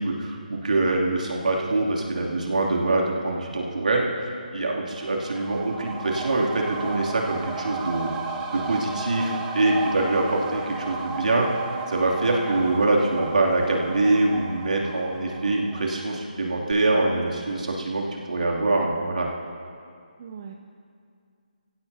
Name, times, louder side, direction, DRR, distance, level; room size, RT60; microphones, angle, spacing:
voice 1, 0.0-4.1 4.5-8.1 8.5-11.6 11.9-19.3, right 2 dB, 65° right, -2 dB, 2.9 m, -24 dB
sound 1, 4.9-16.4 16.7-16.8, right 3 dB, 15° right, 1.0 m, -34 dB
voice 2, 8.7-9.2 16.8-17.0 17.5-17.7 20.2-20.5, right 6 dB, 30° right, 3 dB, 0.7 m, -42 dB
24.0 x 16.0 x 2.9 m, 2.3 s
figure-of-eight pair, 150°, 5 cm